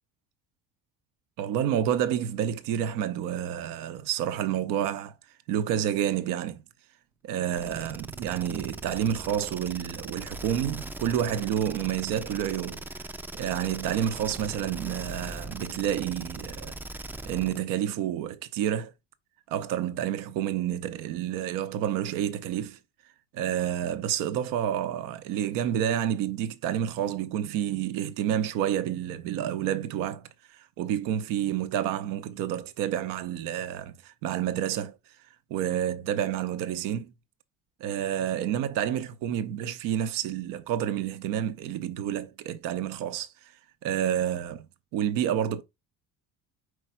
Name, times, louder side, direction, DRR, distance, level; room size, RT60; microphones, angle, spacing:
voice 1, 1.4-5.2 5.5-6.6 7.2-13.1 13.4-16.8 17.2-18.9 19.5-22.8 23.3-34.9 35.5-37.1 37.8-43.5 43.8-44.7 44.9-45.6, right 10 dB, 75° right, 0.8 m, -29 dB
sound 1, 7.5-17.7, right 2 dB, 5° right, 0.3 m, -40 dB
5.1 x 4.7 x 4.3 m
cardioid pair, 125°, 33 cm